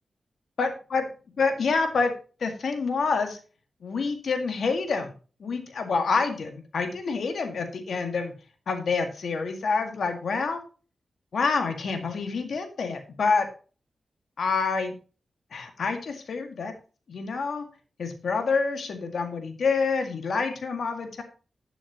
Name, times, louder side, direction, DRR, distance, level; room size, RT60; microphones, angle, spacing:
voice 1, 0.6-1.0 1.4-2.1 2.4-3.4 3.8-5.1 5.4-8.3 8.7-10.6 11.3-13.5 14.4-14.9 15.5-16.7 17.1-17.7 18.0-21.2, left 4 dB, 75° left, 6 dB, 1.8 m, -27 dB
12.0 x 7.0 x 2.9 m, 0.36 s
cardioid pair, 60°, 0 cm